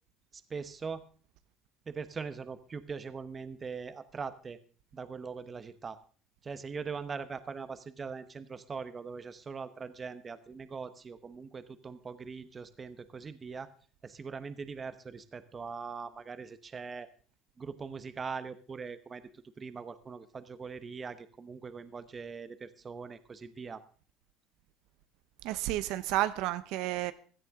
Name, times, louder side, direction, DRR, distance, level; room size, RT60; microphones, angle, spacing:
voice 1, 0.3-1.0 1.9-4.6 4.9-6.0 6.4-13.7 14.0-17.1 17.6-23.8, right 5 dB, 25° right, 1.0 m, -41 dB
voice 2, 25.4-27.1, right 15 dB, 70° right, 0.8 m, -31 dB
16.0 x 14.0 x 3.7 m
cardioid pair, 140°, 0 cm